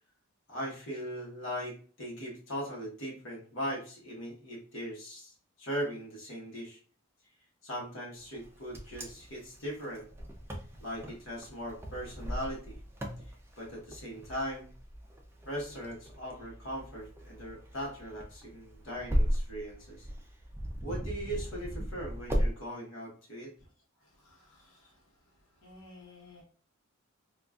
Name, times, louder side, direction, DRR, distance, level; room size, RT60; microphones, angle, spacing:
voice 1, 0.5-6.8 7.6-10.1 10.8-12.8 13.2-14.7 15.5-20.1 20.8-23.5, equal, 60° left, -4 dB, 1.1 m, -39 dB
Wind, 8.3-22.5, equal, 10° right, 0.4 m, -36 dB
voice 2, 24.2-24.9 25.6-26.4, left 2 dB, 85° left, -3 dB, 1.0 m, -54 dB
3.8 x 2.4 x 2.3 m, 0.42 s
head